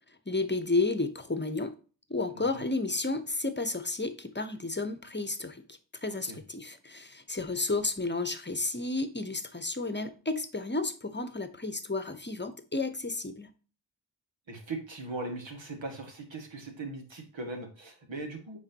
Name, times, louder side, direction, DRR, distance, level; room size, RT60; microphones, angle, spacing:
voice 1, 0.3-1.7 2.1-13.5, left 3 dB, 25° left, 0.9 m, -32 dB
voice 2, 14.5-18.6, right 2 dB, 75° right, 2.0 m, -39 dB
8.7 x 4.7 x 2.8 m
cardioid pair, 45°, 45 cm